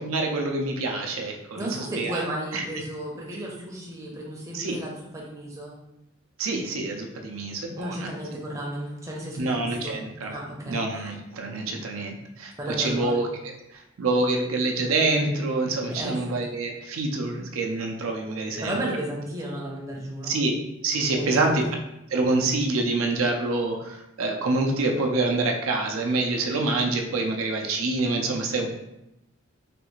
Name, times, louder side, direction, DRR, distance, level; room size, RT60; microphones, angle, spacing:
voice 1, 0.0-2.2 2.5-2.7 4.5-4.8 6.4-8.1 9.4-10.3 10.7-18.7 20.2-20.5 20.8-21.6 22.1-28.7, right 2 dB, 85° right, 2 dB, 0.5 m, -26 dB
voice 2, 1.5-5.7 7.8-10.0 10.3-10.8 12.6-13.2 15.9-16.4 18.6-20.4 21.1-21.5, right 1 dB, 15° right, -3 dB, 0.5 m, -34 dB
3.3 x 2.4 x 3.0 m, 0.89 s
head